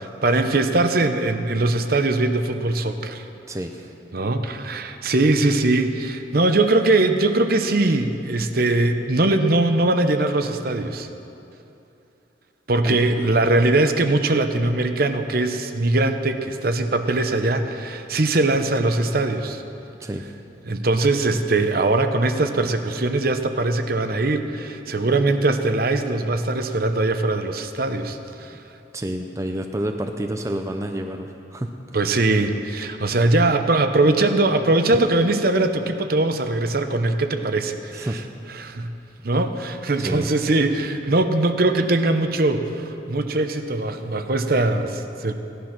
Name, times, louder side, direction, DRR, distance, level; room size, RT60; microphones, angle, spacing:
voice 1, 0.2-3.2 4.1-11.1 12.7-19.6 20.7-28.6 31.9-38.2 38.5-38.9 39.2-45.3, right 2 dB, 55° right, 7 dB, 0.8 m, -21 dB
voice 2, 3.5-3.9 12.8-13.0 20.0-20.2 28.9-31.7 37.9-38.2 40.1-40.3, right 1 dB, 15° right, 4 dB, 0.5 m, -29 dB
16.5 x 11.0 x 5.9 m, 2.8 s
head